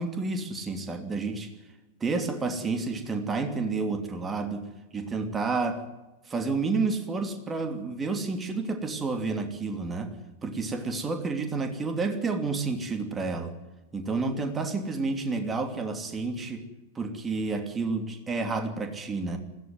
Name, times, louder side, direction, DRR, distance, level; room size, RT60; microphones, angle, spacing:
voice 1, 0.0-1.5 2.0-4.7 4.9-5.8 6.3-10.2 10.4-13.5 13.9-16.7 16.9-19.4, right 3 dB, 15° right, 6 dB, 2.9 m, -30 dB
20.0 x 16.0 x 9.5 m, 1.1 s
figure-of-eight pair, 90°, 0 cm